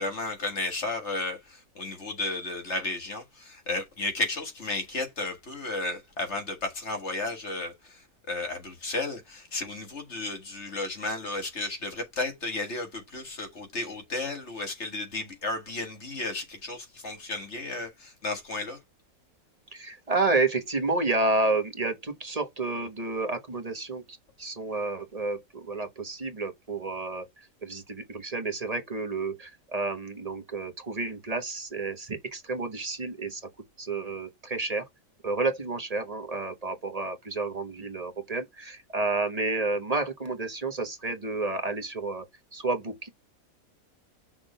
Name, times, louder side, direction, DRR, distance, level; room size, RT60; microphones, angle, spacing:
voice 1, 0.0-8.0 8.3-18.8, left 2 dB, 50° left, 2.0 m, -33 dB
voice 2, 19.7-33.4 33.8-34.9 35.2-42.3 42.5-43.1, right 3 dB, 30° right, 1.2 m, -30 dB
6.0 x 3.6 x 5.5 m
omnidirectional pair, 1.5 m